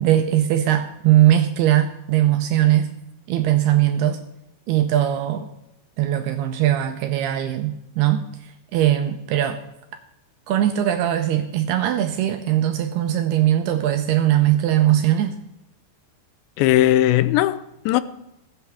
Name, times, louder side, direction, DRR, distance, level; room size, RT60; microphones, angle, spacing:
voice 1, 0.0-2.9 3.3-4.2 4.7-5.5 6.0-9.6 10.5-15.3, right 12 dB, 80° right, 2.5 m, -20 dB
voice 2, 16.6-18.0, left 14 dB, 90° left, 2.9 m, -18 dB
20.5 x 9.0 x 3.5 m
omnidirectional pair, 5.0 m